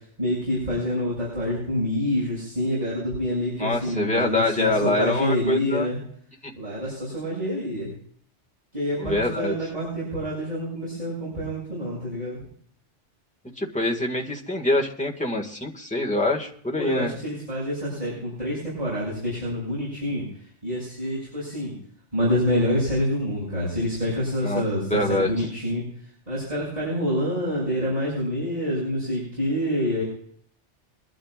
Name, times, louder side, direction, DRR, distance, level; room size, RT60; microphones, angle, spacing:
voice 1, 0.2-6.0 6.6-7.9 8.7-12.4 16.8-20.3 20.6-21.7 22.1-25.8 26.3-30.0, equal, 35° right, -8 dB, 7.1 m, -27 dB
voice 2, 3.6-5.9 6.4-6.5 9.0-9.5 13.6-17.1 24.4-24.6 24.9-25.5, left 2 dB, 5° left, -1 dB, 1.7 m, -25 dB
24.0 x 12.0 x 2.4 m, 0.62 s
omnidirectional pair, 1.2 m